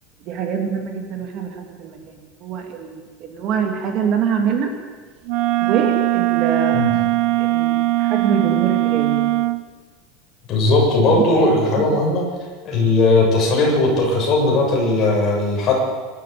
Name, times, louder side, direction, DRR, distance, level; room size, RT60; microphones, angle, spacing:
voice 1, 0.2-4.7 5.6-7.1 7.4-9.3 11.1-12.0, right 6 dB, 40° right, 3 dB, 2.5 m, -25 dB
Wind instrument woodwind instrument, 5.2-9.6, right 18 dB, 55° right, 0.8 m, -20 dB
voice 2, 10.5-12.2 12.6-15.7, left 2 dB, 30° left, -1 dB, 7.2 m, -17 dB
26.0 x 13.0 x 8.5 m, 1.5 s
supercardioid pair, 170°, 0 cm